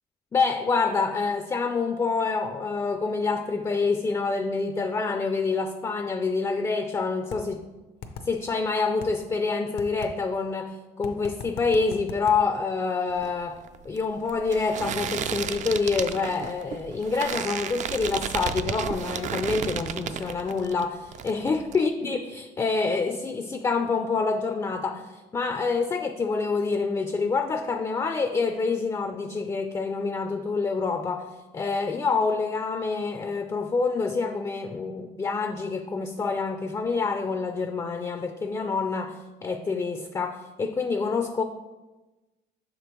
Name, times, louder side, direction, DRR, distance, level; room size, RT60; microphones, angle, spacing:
voice 1, 0.3-7.6 8.2-13.6 13.8-31.3 31.5-41.4, left 4 dB, 20° left, 7 dB, 0.3 m, -27 dB
sound 1, 7.3-7.4 8.0-8.3 9.0-9.1 9.8-10.1 11.0-12.4, left 6 dB, 75° left, 0.6 m, -37 dB
sound 2, 13.1-20.8 21.1-21.8, right 8 dB, 50° right, 0.4 m, -33 dB
6.3 x 5.0 x 3.0 m, 1.1 s
cardioid pair, 90°, 17 cm